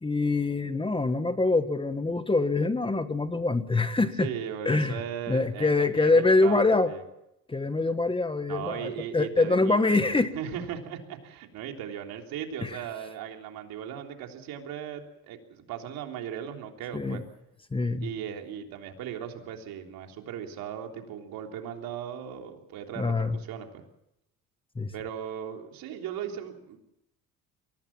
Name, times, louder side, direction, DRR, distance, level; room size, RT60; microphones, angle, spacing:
voice 1, 0.0-4.3 4.6-5.0 5.3-6.9 7.5-10.3 12.6-12.8 16.9-17.2 17.7-18.1 23.0-23.4 24.7-24.9, left 3 dB, 15° left, 10 dB, 1.4 m, -25 dB
voice 2, 4.2-7.0 8.5-17.2 18.0-23.8 24.9-26.8, right 9 dB, 75° right, 3 dB, 3.5 m, -38 dB
23.5 x 17.5 x 7.2 m, 0.85 s
cardioid pair, 105°, 35 cm